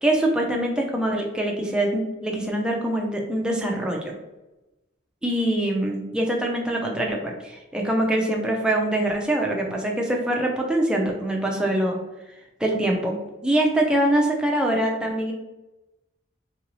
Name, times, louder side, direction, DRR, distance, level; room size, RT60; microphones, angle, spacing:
voice 1, 0.0-4.1 5.2-12.0 12.6-13.2 13.4-15.3, right 1 dB, 5° right, -1 dB, 0.4 m, -24 dB
3.9 x 2.6 x 3.0 m, 1.0 s
head